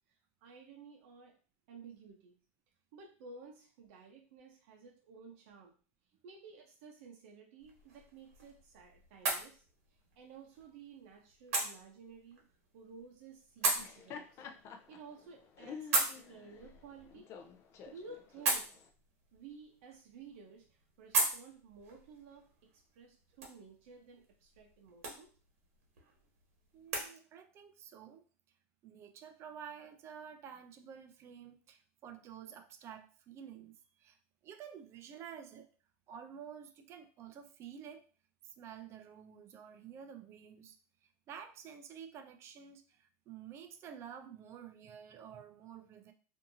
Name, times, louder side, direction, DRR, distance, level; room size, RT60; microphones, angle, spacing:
voice 1, 0.4-1.3 1.7-2.4 2.9-5.7 6.2-9.6 10.2-12.4 12.7-14.4 14.9-17.3 17.9-18.8 19.3-25.3, right 5 dB, 65° right, 1 dB, 0.7 m, -54 dB
sound 1, 7.6-27.1, right 3 dB, 85° right, 1.1 m, -40 dB
Laughter, 13.6-18.9, left 6 dB, 40° left, 0.4 m, -50 dB
voice 2, 26.7-28.2 28.8-34.2 34.4-35.7 36.1-38.0 38.4-40.8 41.3-46.1, right 8 dB, 35° right, 9 dB, 0.4 m, -50 dB
2.7 x 2.6 x 2.6 m, 0.38 s
supercardioid pair, 125°, 8 cm